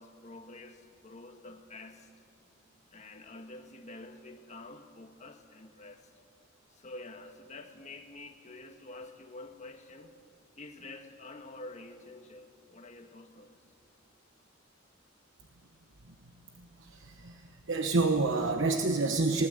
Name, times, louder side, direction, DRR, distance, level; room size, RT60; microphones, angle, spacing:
voice 1, 0.0-2.1 2.9-6.1 6.7-10.1 10.6-13.6, left 2 dB, 35° left, 5 dB, 1.6 m, -48 dB
voice 2, 16.6-19.5, right 3 dB, 65° right, 5 dB, 1.1 m, -29 dB
20.0 x 19.5 x 7.9 m, 2.3 s
head